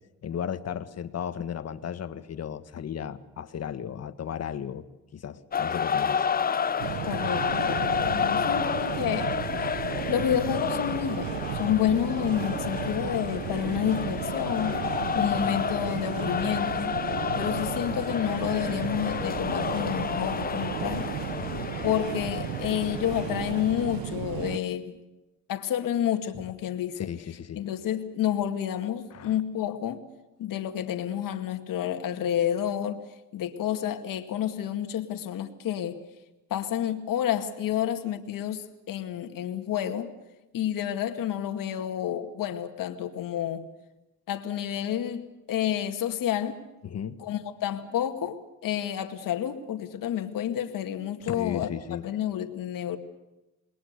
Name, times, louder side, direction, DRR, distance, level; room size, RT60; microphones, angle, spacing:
voice 1, 0.2-4.9 5.1-6.2 11.8-12.0 21.4-21.7 27.0-27.6 29.1-29.3 46.8-47.2 51.2-52.1, left 8 dB, 50° left, 1.7 m, -35 dB
sound 1, 5.5-24.0, left 7 dB, 25° left, 0.7 m, -31 dB
sound 2, 6.8-24.6, right 14 dB, 90° right, 0.8 m, -34 dB
voice 2, 7.1-9.4 10.1-14.8 15.1-17.0 17.4-21.1 21.8-24.9 25.5-27.1 27.5-30.0 30.4-33.0 33.3-36.0 36.5-40.1 40.5-43.7 44.3-46.6 47.2-51.7 52.0-53.0, left 10 dB, 70° left, 2.2 m, -29 dB
28.0 x 21.5 x 6.8 m
cardioid pair, 120°, 34 cm